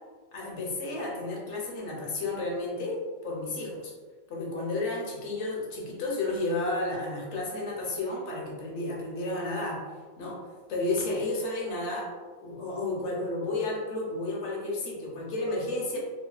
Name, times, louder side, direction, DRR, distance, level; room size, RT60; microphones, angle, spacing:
voice 1, 0.3-3.0 3.2-3.9 4.3-9.8 10.2-10.4 10.7-12.1 12.4-16.0, left 2 dB, 65° left, -3 dB, 0.9 m, -32 dB
2.9 x 2.2 x 2.3 m, 1.4 s
omnidirectional pair, 1.5 m